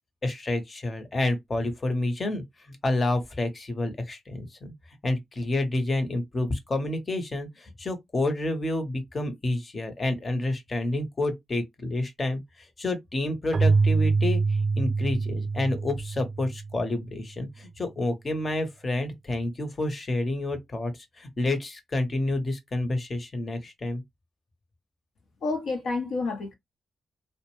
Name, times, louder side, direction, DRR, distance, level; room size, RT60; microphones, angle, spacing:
voice 1, 0.2-4.7 5.0-20.9 21.2-24.0, left 2 dB, 40° left, 0.9 m, -29 dB
Keyboard (musical), 13.5-17.1, right 4 dB, 45° right, 0.4 m, -25 dB
voice 2, 25.4-26.5, left 3 dB, 70° left, 0.7 m, -29 dB
2.4 x 2.1 x 3.0 m
hypercardioid pair, 40°, 0 cm